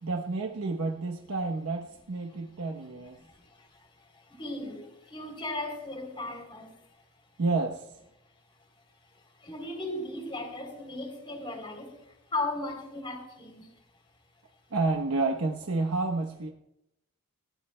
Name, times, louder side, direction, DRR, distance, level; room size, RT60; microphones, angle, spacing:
voice 1, 0.0-3.2 7.4-7.9 14.7-16.5, right 3 dB, 75° right, 3 dB, 1.0 m, -30 dB
voice 2, 4.4-4.8 5.1-6.7 9.4-11.9 12.3-13.6, left 2 dB, 25° left, 3 dB, 3.3 m, -36 dB
21.0 x 17.0 x 2.2 m, 0.85 s
head